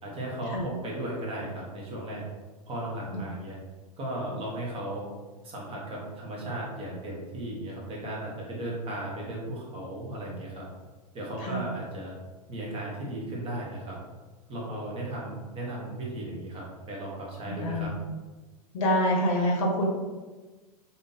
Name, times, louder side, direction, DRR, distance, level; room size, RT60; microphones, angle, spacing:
voice 1, 0.0-2.2 2.7-3.6 4.0-5.0 5.4-10.7 11.1-12.1 12.5-14.0 14.5-17.9, right 1 dB, 30° right, -3 dB, 1.2 m, -36 dB
voice 2, 17.5-18.0 18.7-19.9, equal, 55° left, 0 dB, 0.8 m, -26 dB
3.4 x 2.7 x 2.8 m, 1.3 s
figure-of-eight pair, 90°, 20 cm